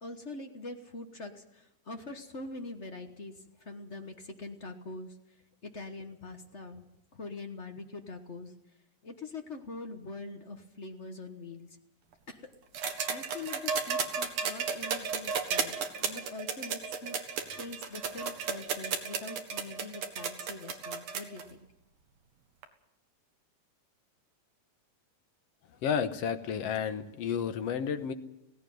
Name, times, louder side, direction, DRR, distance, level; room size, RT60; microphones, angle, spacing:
voice 1, 0.0-5.2 5.6-6.8 7.1-8.5 9.0-11.8 12.3-12.4 13.1-21.6, left 3 dB, 50° left, 5 dB, 0.8 m, -44 dB
sound 1, 12.7-21.4 22.6-22.7, right 6 dB, 65° right, 2.7 m, -33 dB
voice 2, 25.8-28.1, left 7 dB, 65° left, 9 dB, 2.0 m, -31 dB
17.0 x 16.5 x 9.3 m, 0.85 s
omnidirectional pair, 3.4 m